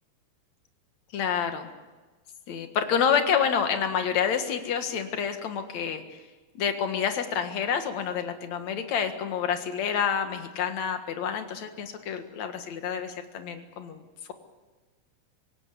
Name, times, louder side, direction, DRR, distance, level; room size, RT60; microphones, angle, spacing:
voice 1, 1.1-1.7 2.5-6.0 6.5-14.0, left 7 dB, 55° left, 6 dB, 2.5 m, -28 dB
25.0 x 17.5 x 8.6 m, 1.3 s
omnidirectional pair, 4.8 m